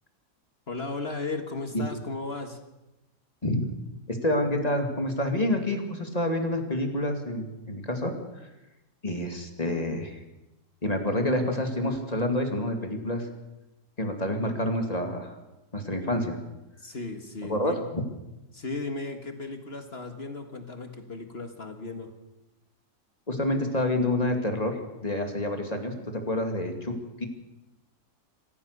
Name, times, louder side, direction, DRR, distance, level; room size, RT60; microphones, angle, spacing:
voice 1, 0.7-2.6 16.8-17.9 18.5-22.1, left 3 dB, 40° left, 6 dB, 2.0 m, -35 dB
voice 2, 4.1-8.1 9.0-10.2 10.8-13.3 14.0-15.4 15.7-16.4 17.5-17.7 23.3-27.2, left 1 dB, 25° left, 4 dB, 2.7 m, -28 dB
26.5 x 15.0 x 6.8 m, 0.99 s
omnidirectional pair, 1.7 m